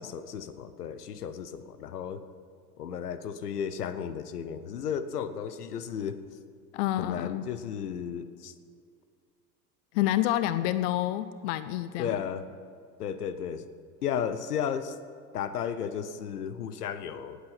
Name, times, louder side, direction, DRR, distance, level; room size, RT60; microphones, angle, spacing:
voice 1, 0.0-2.2 2.8-6.2 7.0-8.5 12.0-12.4 13.0-13.7 14.0-15.0 15.3-17.4, left 8 dB, 70° left, 12 dB, 1.0 m, -34 dB
voice 2, 6.7-7.5 9.9-12.2, left 14 dB, 45° left, 13 dB, 0.5 m, -28 dB
18.0 x 8.2 x 5.9 m, 2.2 s
figure-of-eight pair, 75°, 48 cm